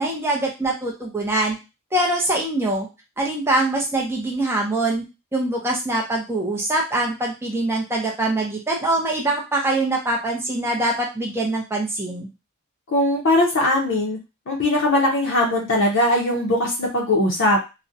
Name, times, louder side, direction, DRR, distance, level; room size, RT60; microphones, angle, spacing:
voice 1, 0.0-1.6 1.9-2.9 3.2-5.0 5.3-12.3, right 2 dB, 10° right, -2 dB, 0.4 m, -23 dB
voice 2, 12.9-14.2 14.5-17.6, left 1 dB, 55° left, -1 dB, 0.5 m, -20 dB
2.4 x 2.0 x 2.6 m, 0.27 s
head